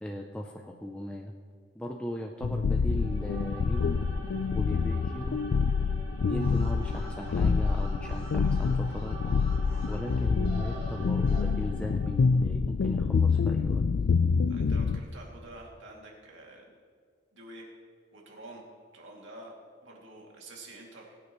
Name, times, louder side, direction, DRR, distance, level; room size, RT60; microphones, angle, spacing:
voice 1, 0.0-1.3 1.7-5.4 6.3-9.3 9.9-13.8, equal, 5° left, 1 dB, 0.5 m, -38 dB
sound 1, 2.4-15.0, left 5 dB, 75° left, 0.4 m, -27 dB
sound 2, 2.8-12.3, right 1 dB, 15° right, 3.5 m, -46 dB
Alarm, 6.3-11.4, right 1 dB, 45° right, 3.4 m, -48 dB
voice 2, 14.5-16.7 17.3-17.7 18.1-18.6 18.9-19.5 19.8-21.2, right 2 dB, 75° right, -1 dB, 2.5 m, -48 dB
21.0 x 9.1 x 3.1 m, 2.1 s
head